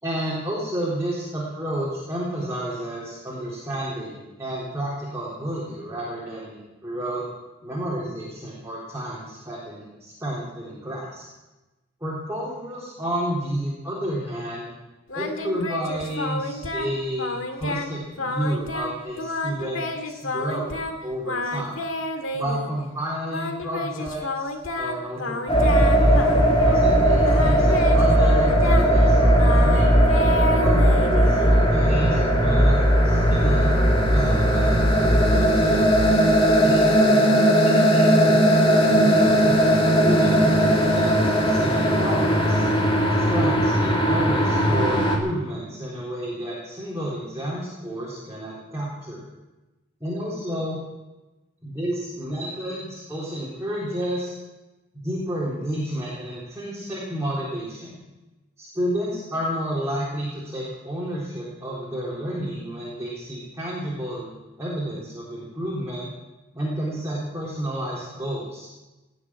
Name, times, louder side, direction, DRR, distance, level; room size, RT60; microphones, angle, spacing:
voice 1, 0.0-7.3 7.6-11.3 12.0-14.7 15.1-20.8 21.0-21.8 22.3-26.1 26.7-29.9 30.6-35.9 36.5-38.4 38.8-42.7 43.1-49.2 50.0-50.8 51.6-54.3 55.0-58.0 58.6-64.3 64.6-66.1 66.5-68.7, right 1 dB, 15° right, -6 dB, 3.9 m, -31 dB
Singing, 15.1-16.9 17.2-17.9 18.2-21.0 21.2-22.7 23.3-26.9 27.2-31.6, left 2 dB, 75° left, 1.8 m, -30 dB
sound 1, 25.5-45.2, equal, 30° left, 2.7 m, -18 dB
19.0 x 7.6 x 9.5 m, 1.1 s
head